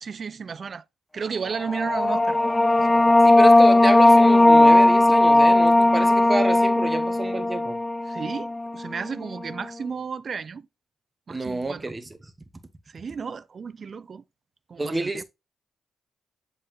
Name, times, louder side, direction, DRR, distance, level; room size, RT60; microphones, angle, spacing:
voice 1, 0.0-0.8 1.1-2.4 2.8-3.1 8.1-10.7 11.3-11.9 12.9-14.2 14.7-15.2, right 6 dB, 50° right, 0.4 m, -33 dB
sound 1, 1.6-8.8, left 2 dB, 20° left, 0.4 m, -17 dB
voice 2, 3.2-7.8 11.3-12.1 14.8-15.2, right 2 dB, 25° right, 1.1 m, -28 dB
7.4 x 4.0 x 3.1 m
hypercardioid pair, 40°, 0 cm